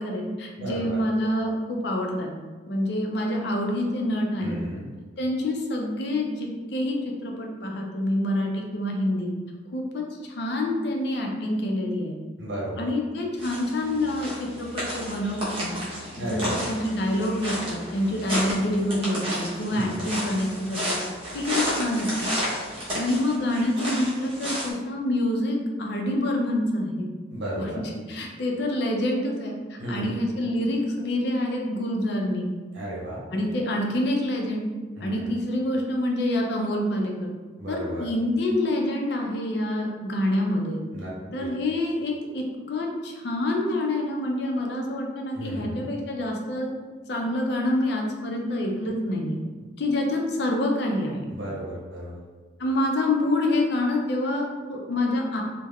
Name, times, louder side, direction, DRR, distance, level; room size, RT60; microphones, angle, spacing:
voice 1, 0.0-2.3 2.7-4.6 5.2-7.0 7.2-9.3 9.7-12.2 12.8-15.8 16.2-21.0 21.3-22.3 22.9-27.1 27.6-27.7 28.1-32.5 33.3-34.7 35.0-37.3 37.7-40.8 41.3-46.7 47.1-49.4 49.8-51.2 52.6-55.4, left 1 dB, 55° left, 0 dB, 0.4 m, -27 dB
voice 2, 0.6-1.0 4.4-4.9 12.4-12.9 16.1-16.6 19.7-20.1 27.3-27.8 29.8-30.2 32.7-33.2 35.0-35.3 37.6-38.1 40.9-41.5 45.3-45.8 51.3-52.2, right 1 dB, 70° right, -6 dB, 0.8 m, -34 dB
sound 1, 13.4-24.7, equal, 30° right, 0.7 m, -32 dB
3.4 x 2.1 x 2.3 m, 1.4 s
head